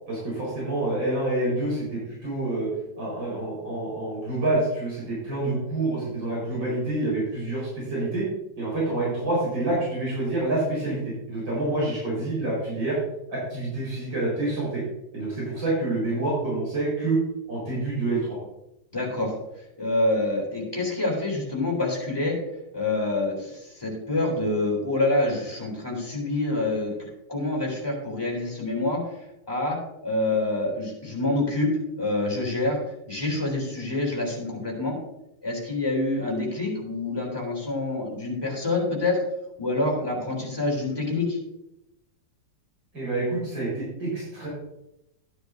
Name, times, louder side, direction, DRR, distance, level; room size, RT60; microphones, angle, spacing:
voice 1, 0.1-2.7 3.0-8.3 8.6-11.0 11.3-13.0 13.3-14.8 15.1-17.2 17.5-18.4 42.9-44.5, right 2 dB, 80° right, -6 dB, 5.4 m, -27 dB
voice 2, 18.9-19.3 19.8-22.4 22.7-26.9 27.3-29.1 29.5-29.8 30.0-31.7 32.0-32.8 33.1-34.9 35.4-39.2 39.6-41.4, left 2 dB, 10° left, -3 dB, 3.4 m, -26 dB
13.0 x 9.9 x 2.7 m, 0.86 s
omnidirectional pair, 2.0 m